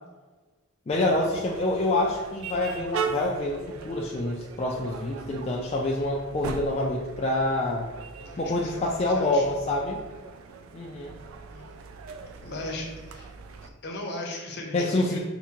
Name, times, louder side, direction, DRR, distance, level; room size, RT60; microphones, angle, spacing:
voice 1, 0.9-7.9 8.4-10.0 10.7-11.1 14.7-15.2, left 2 dB, 30° left, -3 dB, 0.3 m, -27 dB
sound 1, 0.9-13.7, right 5 dB, 75° right, 0.3 m, -39 dB
voice 2, 8.2-9.5 11.5-11.7 12.4-13.3 13.6-15.2, left 2 dB, 55° left, 0 dB, 0.7 m, -37 dB
4.8 x 2.6 x 2.9 m, 1.3 s
head